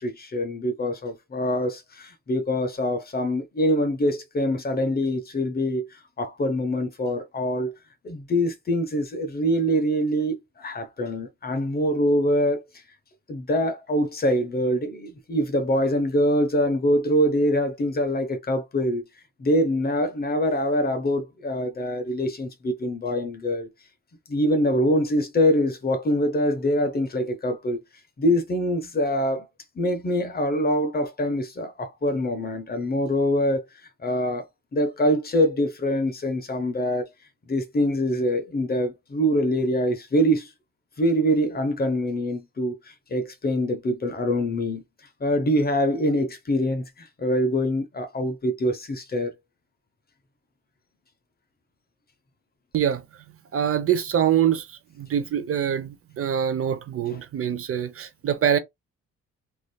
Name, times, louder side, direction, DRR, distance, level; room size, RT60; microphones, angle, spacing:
voice 1, 0.0-7.7 8.0-12.6 13.3-19.0 19.4-23.7 24.3-27.8 28.2-29.5 29.8-33.7 34.0-34.5 34.7-37.1 37.5-40.5 41.0-44.8 45.2-49.3, equal, 30° left, 0.8 m, -24 dB
voice 2, 52.7-53.0 53.5-58.6, right 9 dB, 50° right, 0.6 m, -24 dB
3.2 x 2.6 x 2.2 m
cardioid pair, 90°, 30 cm